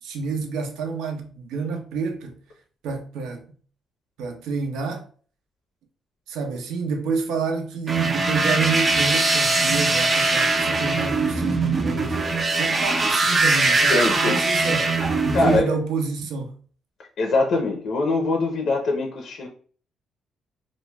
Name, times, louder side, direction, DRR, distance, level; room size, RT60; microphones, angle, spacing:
voice 1, 0.0-2.4 2.8-3.5 4.2-5.0 6.3-12.1 12.6-16.5, right 4 dB, 90° right, 0.5 m, -28 dB
sound 1, 7.9-15.6, right 3 dB, 35° right, 0.4 m, -21 dB
voice 2, 13.9-14.4 15.0-15.7 17.2-19.5, left 3 dB, 70° left, 0.5 m, -23 dB
2.2 x 2.0 x 3.2 m
cardioid pair, 90°, 0 cm